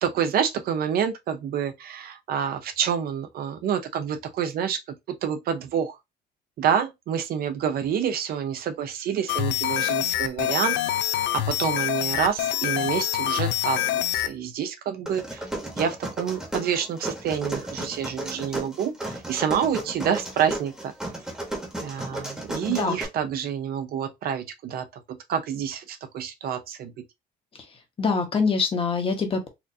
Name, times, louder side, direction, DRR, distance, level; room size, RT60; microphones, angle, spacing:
voice 1, 0.0-6.0 6.6-10.8 11.3-15.5 15.8-20.9 21.8-26.9, right 8 dB, 55° right, 0.6 m, -28 dB
sound 1, 9.3-14.3, left 13 dB, 85° left, 0.5 m, -26 dB
sound 2, 15.1-23.0, right 1 dB, 5° right, 1.2 m, -34 dB
voice 2, 28.0-29.5, left 5 dB, 30° left, 1.0 m, -24 dB
4.2 x 2.5 x 2.7 m
cardioid pair, 145°, 18 cm